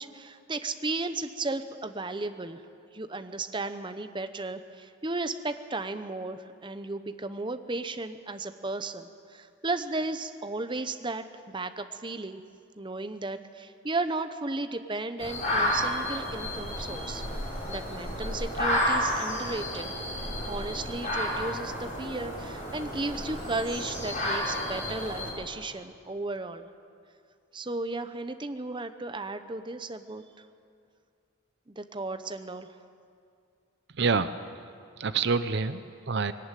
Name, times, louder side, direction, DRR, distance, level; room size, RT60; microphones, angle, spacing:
voice 1, 0.0-2.6 2.9-12.4 12.8-17.2 17.7-19.9 20.4-26.7 27.5-30.4 31.7-32.7, right 2 dB, 25° right, 9 dB, 0.8 m, -35 dB
sound 1, 15.2-25.3, left 1 dB, 40° left, 6.5 m, -31 dB
voice 2, 33.9-34.3 35.0-36.3, right 4 dB, 60° right, 12 dB, 0.6 m, -27 dB
20.5 x 18.0 x 9.2 m, 2.4 s
head